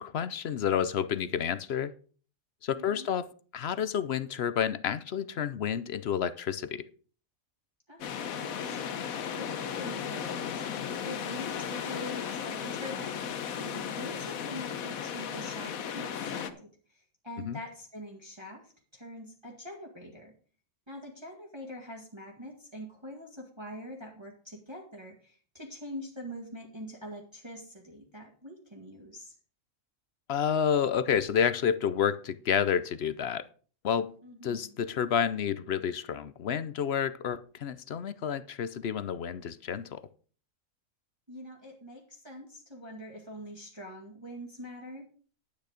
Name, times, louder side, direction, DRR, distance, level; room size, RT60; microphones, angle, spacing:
voice 1, 0.0-1.9 2.6-3.3 3.5-6.9 17.4-17.6 30.3-33.4 33.8-34.1 34.4-40.0, left 8 dB, 60° left, 0.8 m, -29 dB
voice 2, 2.7-3.1 7.9-10.7 11.0-20.3 20.9-29.3 34.2-34.8 41.3-45.1, equal, 20° right, 2.0 m, -44 dB
sound 1, 8.0-16.5, left 8 dB, 90° left, 1.3 m, -35 dB
10.5 x 9.2 x 5.0 m
omnidirectional pair, 1.4 m